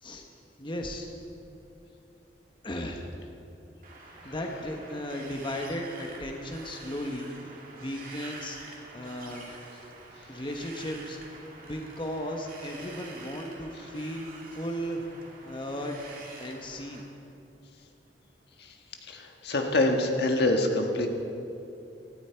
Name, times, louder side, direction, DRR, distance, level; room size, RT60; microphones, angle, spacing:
voice 1, 0.6-1.1 2.6-3.0 4.0-7.3 7.7-9.5 10.3-15.1 15.4-17.0, equal, 30° left, 2 dB, 1.1 m, -36 dB
Wind, 3.8-17.0, right 3 dB, 55° right, 2.5 m, -47 dB
voice 2, 19.1-21.1, left 2 dB, 65° left, 3 dB, 1.5 m, -25 dB
18.0 x 14.0 x 4.5 m, 2.8 s
head